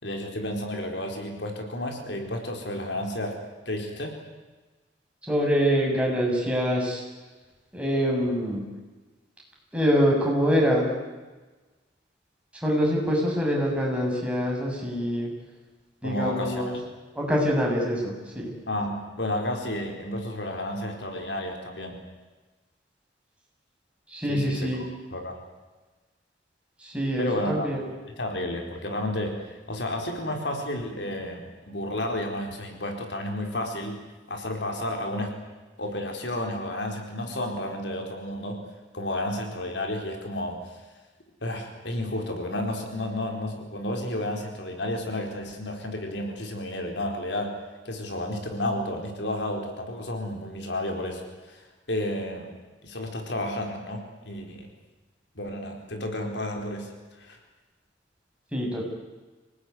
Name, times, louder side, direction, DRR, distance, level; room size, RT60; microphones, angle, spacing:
voice 1, 0.0-3.4 3.7-4.2 16.0-16.6 18.7-22.0 24.3-24.7 25.1-25.4 27.2-27.7 28.2-31.4 31.7-34.0 34.3-35.3 35.8-38.6 38.9-40.6 41.4-47.5 47.8-51.2 51.5-52.5 52.8-54.7 55.3-56.9 57.2-57.4, left 1 dB, 70° left, 3 dB, 4.4 m, -31 dB
voice 2, 5.2-7.0 7.7-8.6 9.7-10.9 12.5-15.3 16.0-16.7 17.1-18.5 24.1-24.8 26.8-27.8 58.5-58.9, equal, 5° right, -2 dB, 6.9 m, -25 dB
26.0 x 19.0 x 9.7 m, 1.2 s
head